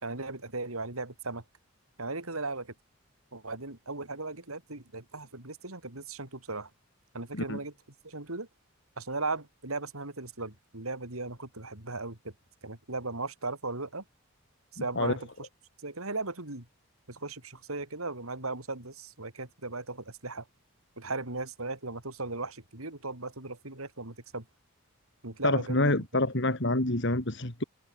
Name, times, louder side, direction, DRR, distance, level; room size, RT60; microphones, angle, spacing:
voice 1, 0.0-1.4 2.0-2.7 3.3-6.7 7.1-7.7 8.0-8.5 9.0-12.3 12.6-14.0 14.7-15.5 15.8-16.7 17.1-20.4 21.0-24.4 25.2-26.0, right 3 dB, 85° right, 4.2 m, -37 dB
voice 2, 25.4-27.6, left 2 dB, 55° left, 2.7 m, -27 dB
head